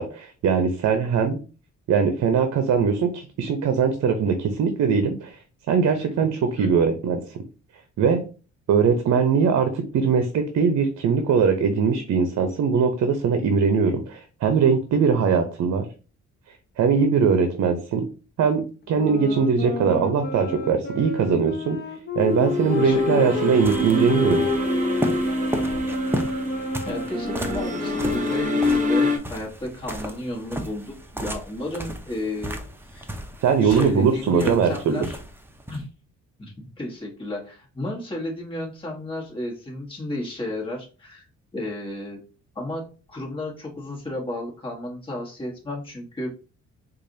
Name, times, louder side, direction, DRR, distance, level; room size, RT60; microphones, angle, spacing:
voice 1, 0.4-1.4 1.9-5.4 5.7-7.4 8.0-8.2 8.7-15.8 16.8-18.1 18.4-21.8 22.2-24.5 33.4-35.1, right 6 dB, 60° right, 7 dB, 0.7 m, -21 dB
sound 1, 18.9-23.6 24.0-29.0, left 5 dB, 35° left, 0.8 m, -30 dB
sound 2, 22.2-29.2, left 1 dB, 25° right, 1.0 m, -26 dB
voice 2, 22.8-23.5 26.8-32.6 32.9-33.0 33.6-35.2 35.7-35.9 36.4-41.2 41.5-42.2 42.5-46.3, left 1 dB, 15° left, -2 dB, 1.3 m, -33 dB
sound 3, 22.9-35.8, right 1 dB, 5° right, 0.6 m, -35 dB
4.7 x 2.5 x 2.7 m, 0.34 s
cardioid pair, 90°, 30 cm